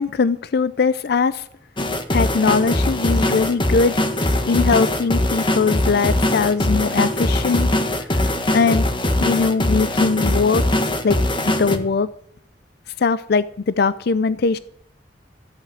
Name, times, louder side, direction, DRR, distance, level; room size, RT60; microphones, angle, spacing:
voice 1, 0.0-1.5 2.1-3.9 4.5-7.8 8.1-8.2 8.5-8.9 9.2-10.6 11.0-11.2 11.4-12.1 13.0-14.6, left 4 dB, 60° left, 15 dB, 0.5 m, -20 dB
sound 1, 1.8-11.8, left 1 dB, 25° left, 1.3 m, -21 dB
14.0 x 8.2 x 7.5 m, 0.68 s
head